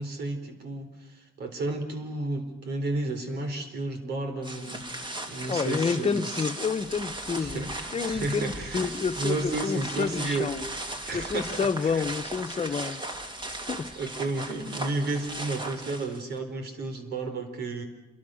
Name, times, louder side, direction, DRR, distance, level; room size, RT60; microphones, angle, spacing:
voice 1, 0.0-4.9 5.3-6.4 7.4-10.5 11.1-12.0 12.5-12.7 13.6-17.9, right 2 dB, 80° right, 7 dB, 4.1 m, -32 dB
sound 1, 4.4-16.4, right 1 dB, 30° right, 2.7 m, -37 dB
voice 2, 5.5-10.6 11.1-13.0 13.7-13.9, left 5 dB, 35° left, 9 dB, 1.1 m, -29 dB
27.5 x 23.0 x 6.5 m, 1.0 s
cardioid pair, 85°, 17 cm